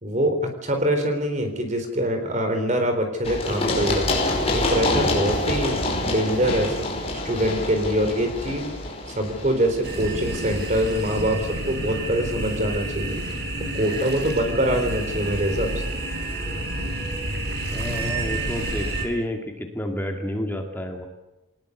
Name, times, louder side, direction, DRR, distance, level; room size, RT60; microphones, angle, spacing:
voice 1, 0.0-4.1 4.5-6.9 7.2-8.7 9.1-13.2 13.7-15.7, right 1 dB, 35° right, 6 dB, 4.1 m, -24 dB
Run, 3.2-10.9, left 2 dB, 30° left, 5.2 m, -27 dB
sound 1, 9.8-19.0, right 1 dB, 50° right, 4.6 m, -29 dB
voice 2, 17.7-21.1, left 1 dB, 10° left, 3 dB, 2.2 m, -30 dB
22.0 x 19.5 x 8.2 m, 1.0 s
head